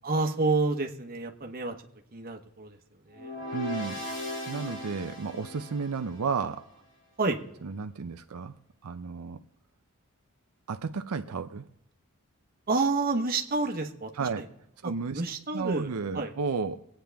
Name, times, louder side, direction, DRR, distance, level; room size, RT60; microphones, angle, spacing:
voice 1, 0.0-1.7 2.1-2.8 3.1-3.4 7.2-7.4 12.7-14.1 14.8-16.3, right 3 dB, 40° right, 4 dB, 1.1 m, -29 dB
sound 1, 3.1-6.4, left 1 dB, 55° left, 4.4 m, -38 dB
voice 2, 3.5-4.0 4.5-6.7 7.6-8.5 8.8-9.4 10.7-11.6 14.1-14.4 14.8-15.2 15.5-16.8, right 5 dB, 85° right, 8 dB, 0.6 m, -32 dB
23.5 x 8.9 x 3.5 m, 0.76 s
head